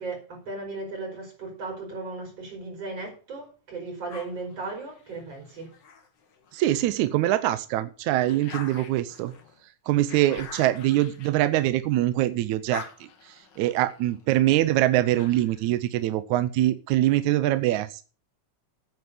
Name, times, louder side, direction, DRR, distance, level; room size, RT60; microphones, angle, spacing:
voice 1, 0.0-5.7, right 3 dB, 50° right, 1 dB, 6.4 m, -36 dB
sound 1, 4.1-6.8 7.3-12.1 12.4-15.7, left 6 dB, 45° left, 1.6 m, -46 dB
voice 2, 6.5-9.3 9.9-18.0, right 14 dB, 75° right, 13 dB, 2.0 m, -24 dB
9.5 x 9.3 x 6.9 m, 0.37 s
omnidirectional pair, 3.6 m